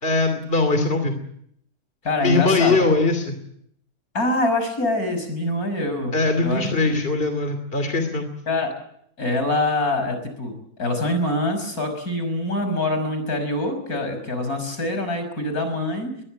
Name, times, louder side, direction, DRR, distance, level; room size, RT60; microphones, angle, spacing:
voice 1, 0.0-1.2 2.2-3.4 6.1-8.3, left 3 dB, 35° left, 7 dB, 2.9 m, -21 dB
voice 2, 2.0-2.8 4.1-6.1 6.4-6.6 6.9-7.0 8.5-8.7 9.2-16.1, left 2 dB, 70° left, 7 dB, 6.5 m, -24 dB
22.0 x 21.0 x 8.9 m, 0.73 s
omnidirectional pair, 1.6 m